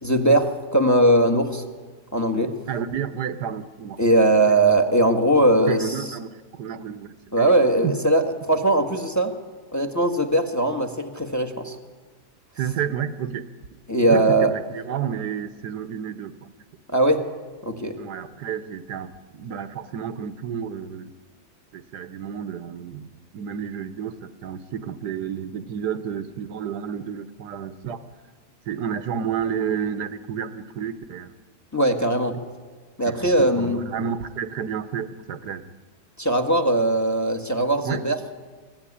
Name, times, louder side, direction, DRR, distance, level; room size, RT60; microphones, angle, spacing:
voice 1, 0.0-1.6 2.1-2.5 4.0-6.0 7.3-9.3 9.7-11.7 13.9-14.5 16.9-17.3 17.6-18.0 31.7-32.3 33.0-33.8 36.2-38.2, right 1 dB, 10° left, 5 dB, 1.5 m, -20 dB
voice 2, 2.7-4.0 4.5-4.6 5.7-7.5 7.8-8.0 12.6-13.4 14.0-16.3 17.9-21.1 21.7-28.0 28.7-31.3 33.1-35.7 37.8-38.0, right 8 dB, 80° right, 11 dB, 1.6 m, -31 dB
24.0 x 16.0 x 9.9 m, 1.5 s
omnidirectional pair, 1.7 m